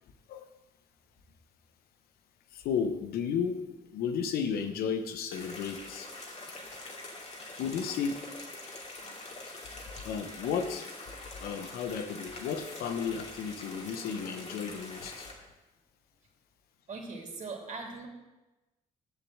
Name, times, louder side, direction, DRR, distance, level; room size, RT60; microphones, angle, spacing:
voice 1, 2.5-6.1 7.6-8.3 10.0-10.9 11.4-15.3, left 6 dB, 85° left, 8 dB, 1.0 m, -33 dB
sound 1, 5.3-15.3, left 2 dB, 45° left, 2.6 m, -44 dB
voice 2, 16.9-18.1, right 3 dB, 50° right, 0 dB, 2.9 m, -40 dB
7.7 x 7.1 x 7.6 m, 1.1 s
supercardioid pair, 70°, 15 cm